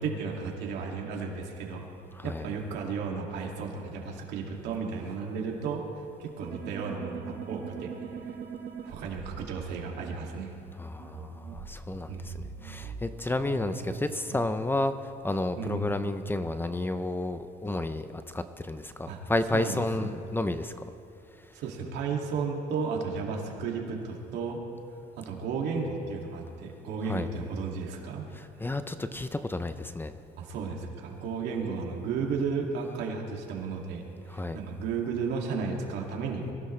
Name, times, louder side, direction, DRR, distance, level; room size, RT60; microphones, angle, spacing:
voice 1, 0.0-1.8 2.2-5.8 6.2-7.9 8.3-8.4 8.8-10.5 12.1-12.5 15.6-15.9 19.1-19.2 19.5-20.2 21.5-24.6 25.2-28.3 30.4-34.0 34.3-36.4, right 5 dB, 85° right, 0 dB, 2.4 m, -33 dB
voice 2, 2.1-2.5 10.8-12.3 12.6-14.9 15.2-18.1 18.3-20.7 27.1-27.3 28.3-30.1 34.3-34.6, left 2 dB, 10° left, 10 dB, 0.6 m, -31 dB
sound 1, 6.4-10.1 11.0-14.5, right 6 dB, 65° right, 1.5 m, -41 dB
23.5 x 16.0 x 3.3 m, 2.7 s
cardioid pair, 110°, 17 cm